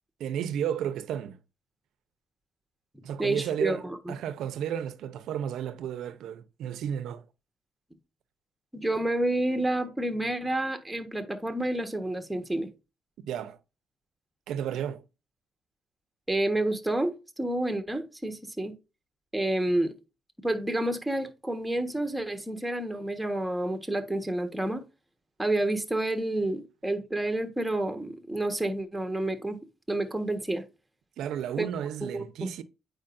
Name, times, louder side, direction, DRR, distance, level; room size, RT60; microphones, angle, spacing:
voice 1, 0.2-1.4 3.0-7.2 13.2-13.6 14.5-15.0 31.2-32.6, right 9 dB, 80° right, 0.7 m, -33 dB
voice 2, 3.2-4.1 8.7-12.7 16.3-18.7 19.3-19.9 20.4-24.8 25.4-29.6 29.9-30.6 31.6-31.7 32.0-32.5, right 1 dB, 5° right, 1.4 m, -29 dB
8.7 x 5.0 x 2.6 m
cardioid pair, 90°, 0 cm